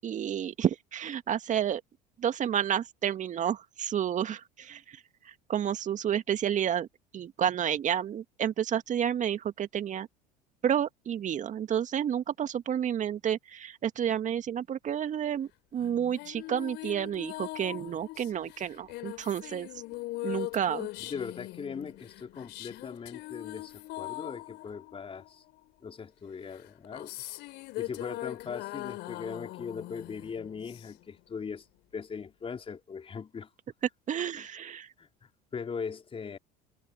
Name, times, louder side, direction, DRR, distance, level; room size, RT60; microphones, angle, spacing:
voice 1, 0.0-1.8 2.2-6.9 7.1-10.1 10.6-19.7 20.2-20.9 34.1-34.9, right 9 dB, 35° right, 2.0 m, -30 dB
sound 1, 15.8-25.7 26.5-31.2, left 19 dB, 55° left, 3.4 m, -41 dB
voice 2, 21.0-25.4 25.8-27.2 27.8-31.6 31.9-33.5 34.4-34.5 35.0-36.4, left 6 dB, 25° left, 4.5 m, -40 dB
figure-of-eight pair, 70°, 21 cm